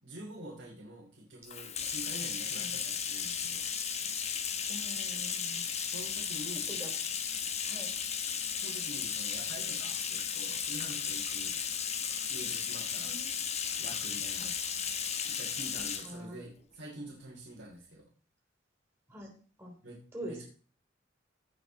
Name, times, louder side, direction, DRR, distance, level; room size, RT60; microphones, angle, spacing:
voice 1, 0.0-3.6 5.9-6.7 8.5-11.6 12.3-13.1 13.8-14.5 15.2-18.0 19.8-20.4, right 1 dB, 85° right, -6 dB, 3.2 m, -47 dB
Bathtub (filling or washing), 1.4-16.1, left 7 dB, 35° left, 1.1 m, -35 dB
voice 2, 4.7-5.6 6.7-6.9 7.7-7.9 13.0-13.3 14.4-14.5 16.0-16.4 19.1-19.3 19.6-19.7 20.1-20.4, equal, 15° right, 0 dB, 3.5 m, -44 dB
17.0 x 5.8 x 4.1 m, 0.41 s
head